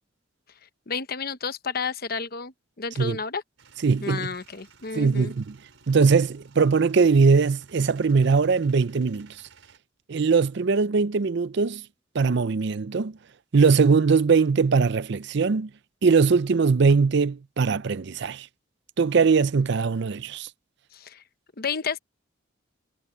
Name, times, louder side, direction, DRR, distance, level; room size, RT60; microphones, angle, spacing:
voice 1, 0.9-3.4 4.0-5.3 20.9-21.2 21.6-22.0, left 5 dB, 50° left, 1.0 m, -31 dB
Male speech man speaking / Vehicle / Engine starting, 3.6-9.8, right 5 dB, 90° right, 4.5 m, -55 dB
voice 2, 3.8-4.3 4.9-5.6 5.9-9.3 10.1-11.8 12.1-13.2 13.5-15.7 16.0-18.5 19.0-20.5, right 5 dB, 60° right, 0.5 m, -21 dB
head